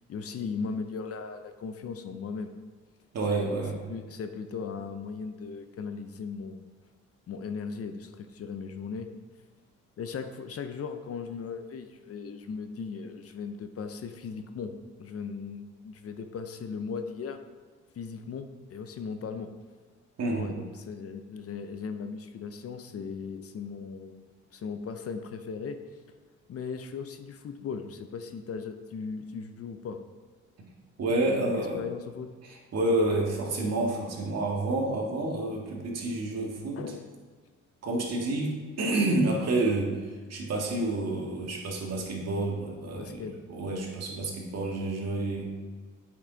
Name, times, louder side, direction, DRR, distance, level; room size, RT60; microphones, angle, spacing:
voice 1, 0.1-2.5 3.3-3.6 3.9-6.7 7.3-9.1 10.0-14.7 15.0-17.4 18.0-19.5 20.3-25.8 26.5-30.0 31.3-32.3 36.7-37.0 42.8-43.3, left 5 dB, 50° left, 8 dB, 0.7 m, -37 dB
voice 2, 3.1-3.8 20.2-20.5 31.0-31.8 32.4-36.8 37.8-40.0 40.3-45.5, right 2 dB, 55° right, -1 dB, 1.9 m, -29 dB
8.2 x 6.0 x 3.9 m, 1.5 s
cardioid pair, 90°, 30 cm